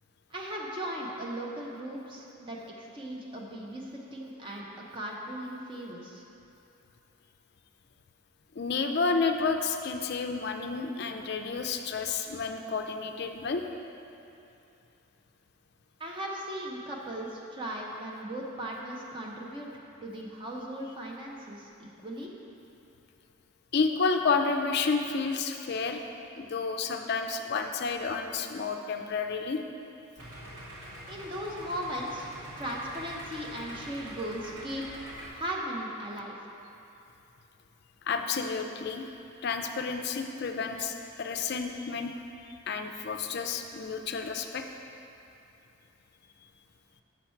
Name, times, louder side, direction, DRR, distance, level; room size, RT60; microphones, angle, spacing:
voice 1, 0.3-4.6 4.9-6.2 16.0-22.3 31.1-32.3 32.6-34.8 35.3-36.4, right 1 dB, 25° right, -2 dB, 0.7 m, -37 dB
voice 2, 8.6-13.6 23.7-26.0 26.4-29.6 38.1-39.1 39.4-42.1 42.7-44.6, left 4 dB, 50° left, 5 dB, 0.4 m, -30 dB
Idling, 30.2-35.3, equal, 85° right, 1.7 m, -44 dB
6.3 x 5.9 x 4.4 m, 2.8 s
head